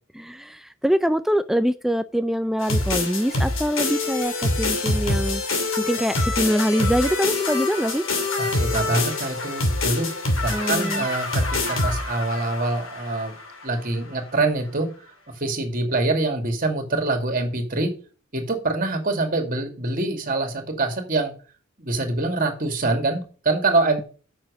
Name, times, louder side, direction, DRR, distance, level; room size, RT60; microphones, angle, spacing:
voice 1, 0.1-5.4 5.8-8.0 10.5-11.1, equal, ahead, 12 dB, 0.4 m, -24 dB
sound 1, 2.6-13.7, left 2 dB, 75° left, 2.7 m, -25 dB
voice 2, 8.4-10.1 10.4-13.3 13.6-14.9 15.4-17.9 18.3-21.3 21.8-24.0, right 2 dB, 45° right, 5 dB, 2.4 m, -25 dB
7.6 x 6.4 x 6.3 m, 0.37 s
head